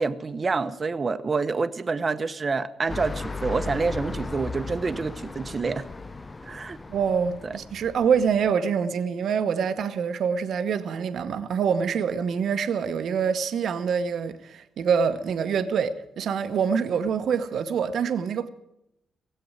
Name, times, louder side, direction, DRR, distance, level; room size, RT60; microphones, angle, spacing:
voice 1, 0.0-5.9 6.4-6.8 7.4-7.5, right 4 dB, 40° right, 0.9 m, -27 dB
sound 1, 2.9-8.5, left 3 dB, 30° left, 0.7 m, -36 dB
voice 2, 6.9-18.5, right 6 dB, 70° right, 1.0 m, -25 dB
17.0 x 7.8 x 9.6 m
supercardioid pair, 55°, 0 cm